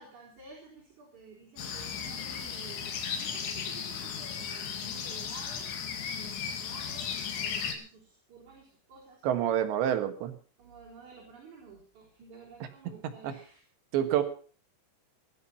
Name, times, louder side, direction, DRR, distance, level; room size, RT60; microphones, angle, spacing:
voice 1, 0.0-5.7 6.2-7.2 7.4-9.2 10.6-13.7 14.0-14.2, right 4 dB, 40° right, -4 dB, 5.1 m, -52 dB
sound 1, 1.6-7.7, left 7 dB, 70° left, 4.4 m, -36 dB
voice 2, 9.2-10.4 13.2-13.3 13.9-14.2, right 10 dB, 75° right, 9 dB, 3.5 m, -27 dB
17.0 x 12.0 x 5.7 m, 0.42 s
omnidirectional pair, 5.5 m